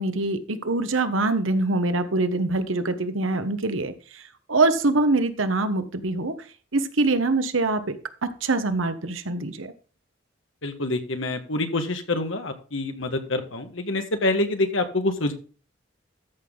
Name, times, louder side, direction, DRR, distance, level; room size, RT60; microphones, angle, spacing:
voice 1, 0.0-6.3 6.7-8.0 8.2-9.7, right 2 dB, 90° right, 10 dB, 1.2 m, -24 dB
voice 2, 10.6-15.3, left 2 dB, 75° left, 7 dB, 1.6 m, -26 dB
13.5 x 6.1 x 3.8 m, 0.37 s
head